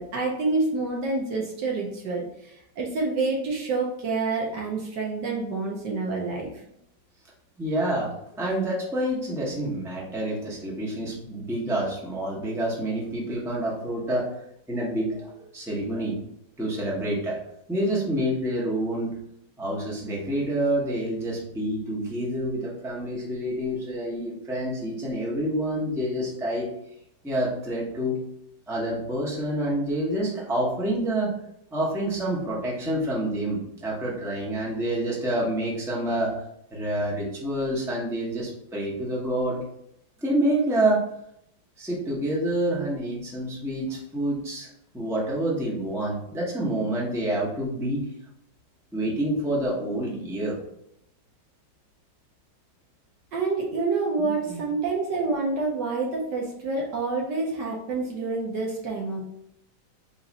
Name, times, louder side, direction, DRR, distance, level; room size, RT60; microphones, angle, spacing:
voice 1, 0.0-6.5 53.3-59.2, right 3 dB, 70° right, -1 dB, 1.3 m, -28 dB
voice 2, 7.6-14.4 14.7-16.2 16.6-17.4 17.7-19.2 19.6-26.7 27.2-28.2 28.7-31.3 31.7-36.4 36.7-39.6 40.2-41.0 41.8-44.7 44.9-48.0 48.9-50.6 54.5-54.6, right 1 dB, 5° right, -4 dB, 0.4 m, -27 dB
3.9 x 2.5 x 4.0 m, 0.77 s
omnidirectional pair, 2.0 m